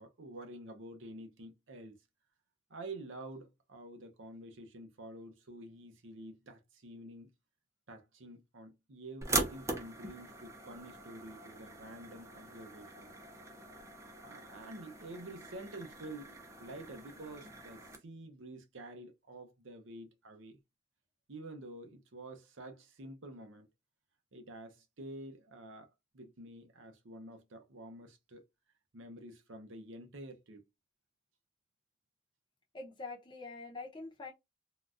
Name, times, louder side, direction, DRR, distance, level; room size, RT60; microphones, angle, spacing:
voice 1, 0.0-2.0 2.7-7.3 7.9-13.1 14.2-20.6 21.3-23.7 24.3-28.4 28.9-30.7, right 1 dB, 75° right, 0.7 m, -49 dB
sound 1, 9.2-18.0, right 3 dB, 15° right, 0.6 m, -41 dB
voice 2, 32.7-34.3, left 3 dB, 25° left, 0.7 m, -45 dB
3.8 x 2.3 x 2.4 m
head